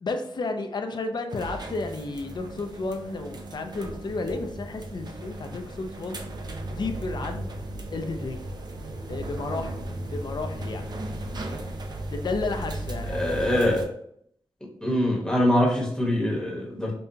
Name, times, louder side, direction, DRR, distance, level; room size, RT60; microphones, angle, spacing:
voice 1, 0.0-6.2 6.7-7.5 7.9-8.4 9.1-9.8 10.1-10.8 12.1-13.4, left 3 dB, 50° left, 6 dB, 0.5 m, -32 dB
sound 1, 1.3-13.8, right 1 dB, 50° right, 0.5 m, -36 dB
voice 2, 13.1-13.8 14.8-16.9, left 1 dB, 10° left, -3 dB, 1.0 m, -23 dB
5.3 x 2.2 x 2.7 m, 0.69 s
wide cardioid pair, 120°, 9 cm